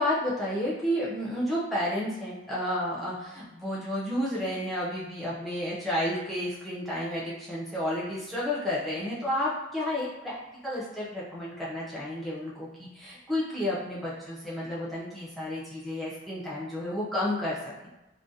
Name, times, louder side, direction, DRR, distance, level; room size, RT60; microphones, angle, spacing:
voice 1, 0.0-10.4 10.6-17.7, left 1 dB, ahead, -8 dB, 0.4 m, -31 dB
2.3 x 2.1 x 2.6 m, 0.98 s
head